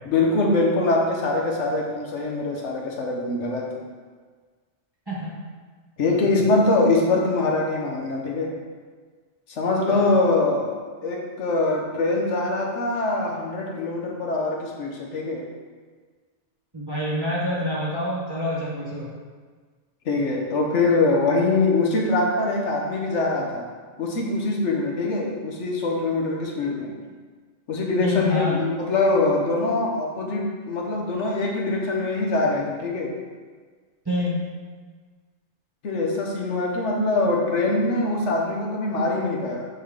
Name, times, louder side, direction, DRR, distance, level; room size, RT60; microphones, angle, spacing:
voice 1, 0.0-3.7 6.0-8.5 9.6-10.8 11.0-15.4 20.1-23.6 24.0-26.9 27.7-33.1 35.8-39.7, left 2 dB, 80° left, 0 dB, 1.2 m, -23 dB
voice 2, 5.1-5.4 6.1-6.3 9.9-10.1 16.7-19.1 28.0-28.6 34.1-34.5, left 1 dB, 20° right, -7 dB, 0.9 m, -27 dB
7.0 x 3.9 x 3.6 m, 1.5 s
omnidirectional pair, 1.2 m